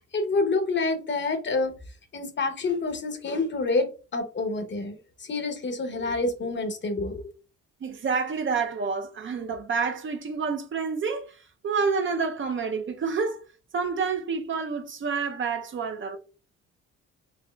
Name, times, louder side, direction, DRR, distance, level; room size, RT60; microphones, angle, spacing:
voice 1, 0.0-1.7 2.1-7.3, left 3 dB, 40° left, 0.8 m, -28 dB
voice 2, 7.8-11.2 11.6-13.4 13.7-16.2, right 5 dB, 40° right, 0.5 m, -28 dB
4.2 x 2.8 x 2.2 m
cardioid pair, 90°, 30 cm